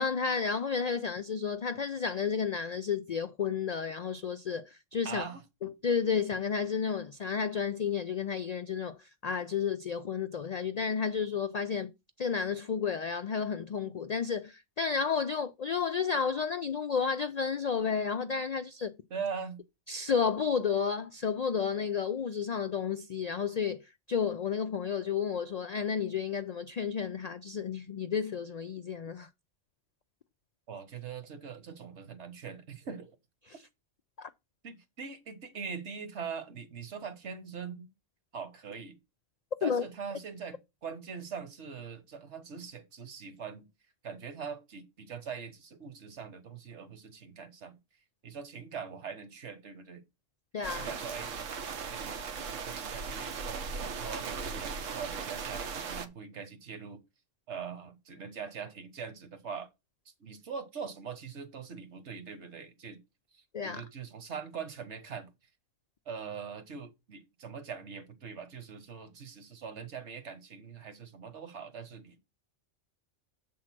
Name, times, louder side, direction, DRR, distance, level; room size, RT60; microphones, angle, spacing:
voice 1, 0.0-5.2 5.6-11.9 12.2-18.9 19.9-29.3 34.2-34.3 39.6-39.8 50.5-50.9 63.5-63.8, left 6 dB, 80° left, 0.3 m, -32 dB
voice 2, 5.0-5.4 19.1-19.6 30.7-33.2 34.6-37.9 38.3-39.0 39.6-43.7 44.0-47.8 48.2-50.0 50.7-51.3 51.9-57.0 57.5-59.7 60.2-63.0 63.3-65.3 66.1-72.2, right 6 dB, 65° right, 1.3 m, -42 dB
sound 1, 50.6-56.1, right 5 dB, 85° right, 1.2 m, -38 dB
7.5 x 3.8 x 5.9 m
omnidirectional pair, 1.3 m